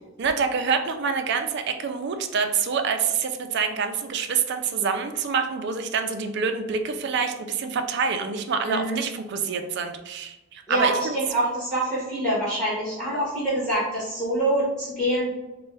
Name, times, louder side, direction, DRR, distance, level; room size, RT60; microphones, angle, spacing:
voice 1, 0.2-11.2, right 5 dB, 50° right, 7 dB, 0.4 m, -26 dB
voice 2, 8.7-9.0 10.7-15.3, right 1 dB, 5° left, -9 dB, 1.4 m, -25 dB
4.2 x 2.2 x 3.3 m, 1.1 s
head